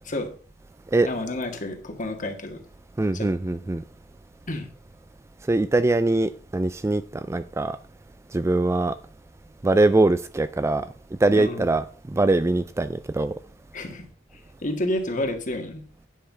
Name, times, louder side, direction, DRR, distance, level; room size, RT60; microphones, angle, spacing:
voice 1, 1.0-2.6 3.1-3.3 4.5-4.7 11.3-11.7 13.7-14.1 14.3-15.8, left 1 dB, 45° left, 1.8 m, -30 dB
voice 2, 3.0-3.8 5.5-7.8 8.3-8.9 9.6-10.9 11.2-13.3, right 2 dB, 15° right, 0.3 m, -22 dB
10.0 x 5.7 x 5.4 m
head